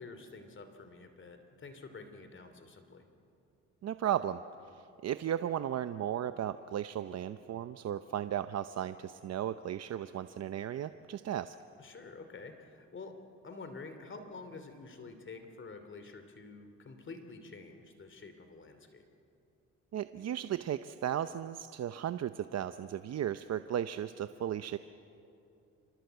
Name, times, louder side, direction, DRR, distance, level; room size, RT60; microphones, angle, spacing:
voice 1, 0.0-3.0 11.8-13.1 13.4-19.0, left 3 dB, 40° left, 8 dB, 2.8 m, -48 dB
voice 2, 3.8-4.4 4.7-11.6 19.9-24.8, right 10 dB, 60° right, 11 dB, 0.8 m, -35 dB
27.0 x 26.0 x 8.1 m, 2.8 s
cardioid pair, 90°, 30 cm